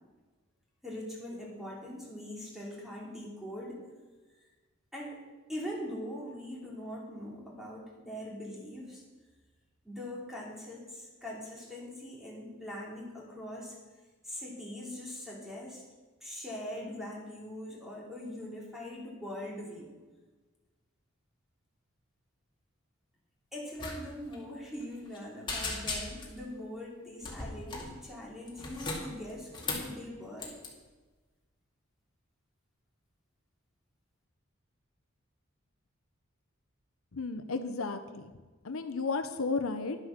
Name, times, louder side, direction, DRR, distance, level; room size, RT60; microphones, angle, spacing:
voice 1, 0.8-3.8 4.9-5.2 5.5-9.0 9.8-13.8 14.2-15.8 16.2-19.9 23.5-30.6, left 1 dB, ahead, -4 dB, 2.9 m, -42 dB
sound 1, 23.8-24.0 24.2-24.4 24.8-25.2 25.5-26.4 27.2-27.9 28.5-29.9 30.4-30.7, left 3 dB, 25° left, 2.2 m, -37 dB
voice 2, 37.1-38.3 38.6-40.0, left 4 dB, 75° left, 9 dB, 0.7 m, -33 dB
11.0 x 7.6 x 6.5 m, 1.3 s
head